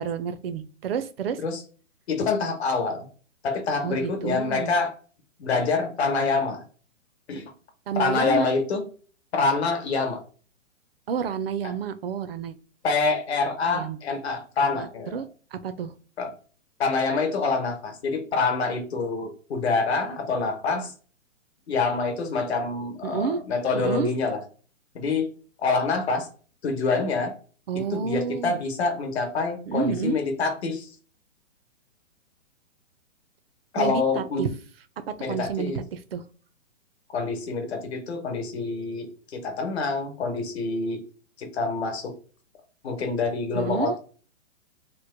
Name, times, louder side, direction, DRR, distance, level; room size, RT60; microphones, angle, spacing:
voice 1, 0.0-1.4 3.8-4.7 7.9-8.5 11.1-12.5 13.7-14.0 14.7-15.2 15.5-15.9 23.0-23.4 23.7-24.1 27.7-28.6 29.7-30.2 33.8-34.5 35.1-36.2 43.5-44.0, right 6 dB, 50° right, 11 dB, 0.4 m, -29 dB
voice 2, 2.1-3.1 3.4-4.9 5.4-6.6 7.3-7.4 8.0-8.8 9.3-10.2 12.8-15.1 16.2-16.3 16.8-20.9 21.7-24.4 24.9-25.3 25.6-26.3 26.6-27.3 27.9-30.9 33.7-34.5 35.2-35.8 37.1-39.1 39.3-41.0 41.4-42.1 42.8-44.0, left 4 dB, 55° left, 5 dB, 1.0 m, -26 dB
3.0 x 2.1 x 3.2 m, 0.38 s
hypercardioid pair, 165°, 39 cm